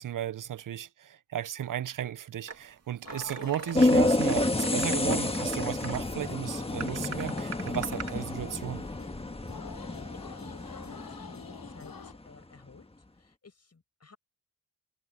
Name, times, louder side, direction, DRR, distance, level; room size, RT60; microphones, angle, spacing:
voice 1, 0.0-8.8, right 10 dB, 55° right, 0.6 m, -35 dB
sound 1, 2.5-2.6 3.1-6.0 6.8-8.2, right 5 dB, 40° right, 2.4 m, -42 dB
sound 2, 3.0-12.1, left 6 dB, 60° left, 7.5 m, -47 dB
sound 3, 3.7-12.1, left 2 dB, 15° left, 1.5 m, -29 dB
voice 2, 9.8-12.9 13.2-14.2, left 4 dB, 40° left, 7.9 m, -55 dB
cardioid pair, 70°, 39 cm